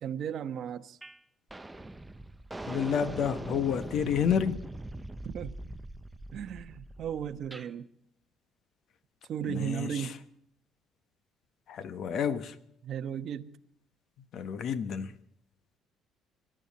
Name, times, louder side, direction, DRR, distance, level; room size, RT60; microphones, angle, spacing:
voice 1, 0.0-1.0 5.2-5.6 6.3-7.8 9.3-10.2 12.8-13.6, right 9 dB, 50° right, 1.0 m, -35 dB
sound 1, 1.0-1.2 1.5-7.7, right 2 dB, 10° right, 0.6 m, -42 dB
voice 2, 2.7-4.6 9.4-10.1 11.7-12.5 14.3-15.1, left 7 dB, 50° left, 1.2 m, -30 dB
25.5 x 12.5 x 4.2 m
cardioid pair, 145°, 0 cm